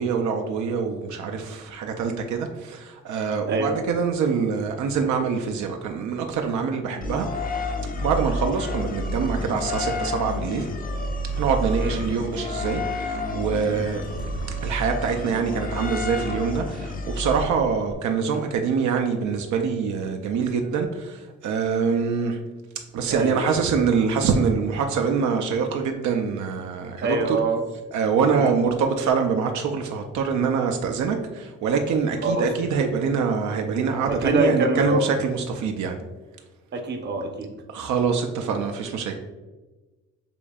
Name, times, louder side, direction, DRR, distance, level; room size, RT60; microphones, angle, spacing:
voice 1, 0.0-7.3 8.0-10.7 11.4-14.0 14.6-22.4 22.9-27.4 27.9-36.0 37.7-39.2, right 6 dB, 70° right, 3 dB, 0.5 m, -25 dB
voice 2, 3.5-3.8 11.8-12.2 23.1-23.4 27.0-27.6 28.3-28.6 32.2-32.7 34.1-35.0 36.7-37.5, right 2 dB, 35° right, 4 dB, 0.7 m, -25 dB
sound 1, 7.0-17.9, left 2 dB, 30° left, 0.4 m, -30 dB
sound 2, 11.3-12.6 13.7-15.0, left 1 dB, 50° left, 1.3 m, -41 dB
6.8 x 2.6 x 2.3 m, 1.2 s
cardioid pair, 90°, 30 cm